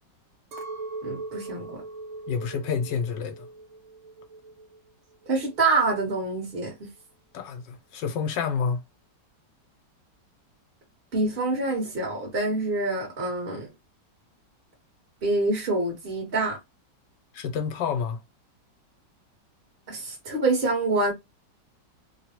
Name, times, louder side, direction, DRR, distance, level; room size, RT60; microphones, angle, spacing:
Chink clink, 0.5-4.9 5.1-5.9, right 3 dB, 60° right, 1.1 m, -40 dB
voice 1, 1.0-1.8 5.3-6.7 11.1-13.7 15.2-16.6 19.9-21.1, right 3 dB, 35° right, 1.3 m, -26 dB
voice 2, 2.3-3.5 7.3-8.8 17.3-18.2, left 6 dB, 80° left, 1.3 m, -29 dB
3.2 x 2.3 x 2.9 m
omnidirectional pair, 1.9 m